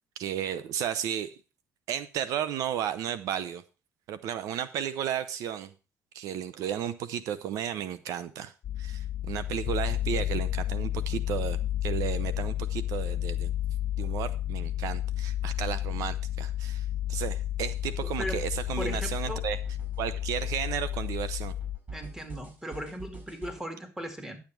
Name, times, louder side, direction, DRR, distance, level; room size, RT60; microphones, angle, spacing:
voice 1, 0.2-1.4 1.9-3.6 4.1-5.7 6.1-8.5 8.8-13.5 14.0-19.6 20.0-21.5, right 10 dB, 80° right, 13 dB, 0.7 m, -33 dB
sound 1, 8.6-21.8, left 12 dB, 55° left, 0.5 m, -31 dB
sound 2, 17.6-23.6, right 3 dB, 35° right, 6.8 m, -45 dB
voice 2, 18.8-19.4 21.9-24.4, equal, 10° right, 6 dB, 2.2 m, -37 dB
10.5 x 7.4 x 4.6 m, 0.32 s
cardioid pair, 115°, 6 cm